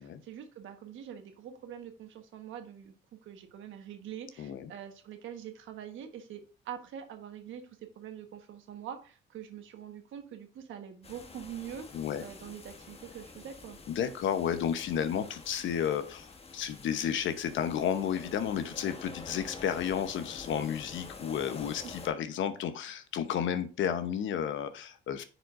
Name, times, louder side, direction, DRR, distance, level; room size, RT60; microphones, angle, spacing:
voice 1, 0.0-2.9 3.2-7.6 7.9-11.9 12.2-13.8 21.8-21.9, right 9 dB, 80° right, 6 dB, 1.3 m, -44 dB
voice 2, 4.4-4.7 11.9-12.2 13.9-25.2, left 9 dB, 75° left, 10 dB, 0.9 m, -32 dB
sound 1, 11.0-22.1, left 4 dB, 30° left, 1.1 m, -48 dB
10.0 x 5.0 x 2.5 m, 0.36 s
cardioid pair, 90°, 20 cm